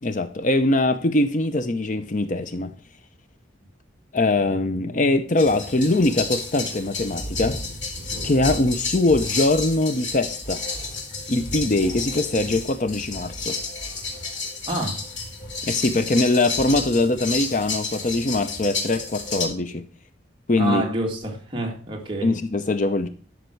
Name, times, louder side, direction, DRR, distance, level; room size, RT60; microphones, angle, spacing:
voice 1, 0.0-2.7 4.1-7.6 8.2-10.6 11.3-13.6 15.7-19.9 20.5-20.8 22.2-23.1, left 2 dB, 40° left, 0.6 m, -22 dB
sound 1, 5.4-19.4, left 3 dB, 70° left, 2.4 m, -31 dB
voice 2, 14.7-15.1 20.6-22.3, right 2 dB, 25° right, 2.1 m, -27 dB
12.0 x 5.9 x 4.6 m
head